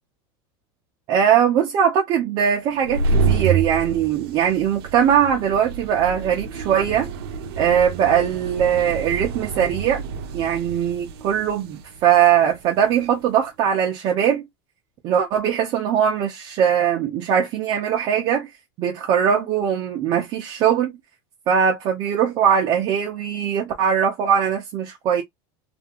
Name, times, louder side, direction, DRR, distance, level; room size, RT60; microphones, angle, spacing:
voice 1, 1.1-7.1 7.6-10.0 10.3-14.5 15.0-18.5 18.8-20.9 21.5-25.2, right 8 dB, 30° right, 0.6 m, -20 dB
sound 1, 2.7-13.2, right 4 dB, 70° right, 0.7 m, -28 dB
2.7 x 2.5 x 2.8 m
supercardioid pair, 170°, 13 cm